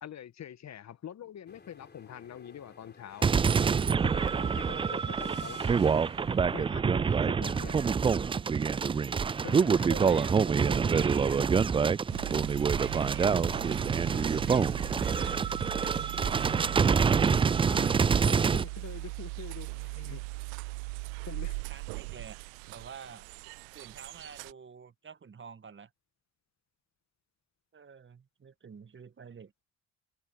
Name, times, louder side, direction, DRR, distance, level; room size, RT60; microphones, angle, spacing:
voice 1, 0.0-3.3 4.0-5.8 6.5-7.9 8.9-9.0 9.4-10.3 10.8-11.4 17.7-20.2 21.3-21.6, left 10 dB, 45° left, 1.9 m, -45 dB
sound 1, 1.5-6.7, left 4 dB, 25° left, 4.2 m, -54 dB
sound 2, 3.2-18.6, right 6 dB, 15° right, 0.4 m, -26 dB
voice 2, 7.6-8.5 9.9-11.4 12.8-15.4 15.8-17.1 21.7-22.4 22.7-23.3 23.7-25.9 27.7-29.5, right 6 dB, 30° right, 1.9 m, -47 dB
sound 3, 12.1-24.5, right 34 dB, 70° right, 0.5 m, -39 dB
hypercardioid pair, 50°, 37 cm